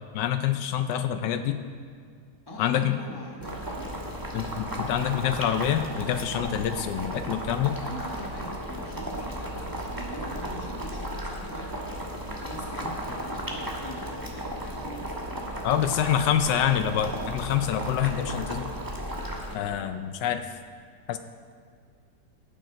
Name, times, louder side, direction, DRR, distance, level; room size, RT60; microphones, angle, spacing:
voice 1, 0.1-1.6 2.6-3.0 4.3-7.8 15.6-18.7 19.5-20.5 21.1-21.2, left 10 dB, 80° left, 9 dB, 1.2 m, -26 dB
voice 2, 2.5-4.6 7.8-11.8 12.2-15.2 15.7-17.0, equal, 15° left, -2 dB, 1.6 m, -43 dB
Boiling, 3.4-19.5, right 1 dB, 15° right, 1.2 m, -35 dB
16.0 x 9.2 x 3.9 m, 2.2 s
omnidirectional pair, 1.9 m